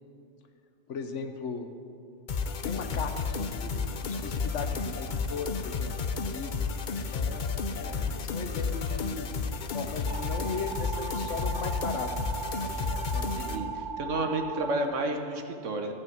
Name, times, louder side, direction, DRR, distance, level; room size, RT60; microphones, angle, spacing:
voice 1, 0.9-1.7 2.6-6.5 7.1-12.3 13.1-13.3, left 5 dB, 70° left, 7 dB, 1.2 m, -38 dB
sound 1, 2.3-13.6, left 4 dB, 50° left, 0.6 m, -32 dB
sound 2, 10.1-14.9, right 6 dB, 45° right, 1.2 m, -38 dB
voice 2, 13.2-15.9, right 2 dB, 70° right, 5 dB, 1.4 m, -31 dB
14.0 x 5.6 x 9.2 m, 2.5 s
omnidirectional pair, 1.3 m